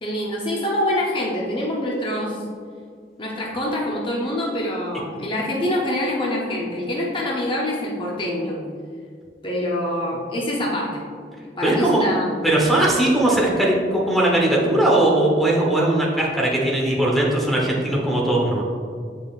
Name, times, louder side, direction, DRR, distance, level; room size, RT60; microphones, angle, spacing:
voice 1, 0.0-2.4 3.2-8.6 9.4-11.0 11.6-12.3, left 1 dB, 30° left, -3 dB, 0.7 m, -25 dB
voice 2, 11.6-12.1 12.4-18.6, right 1 dB, ahead, -3 dB, 1.0 m, -19 dB
7.5 x 5.3 x 2.4 m, 2.1 s
head